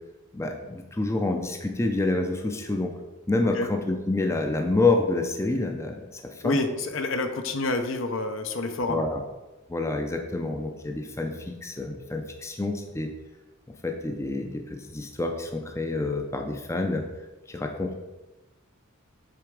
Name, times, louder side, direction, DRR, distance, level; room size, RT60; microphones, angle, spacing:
voice 1, 0.3-3.0 3.3-6.6 8.9-9.2 9.7-13.1 13.8-17.0 17.5-17.9, left 2 dB, 15° left, 3 dB, 0.5 m, -28 dB
voice 2, 6.4-9.0, left 2 dB, 65° left, 7 dB, 0.7 m, -28 dB
6.9 x 3.9 x 4.8 m, 1.1 s
head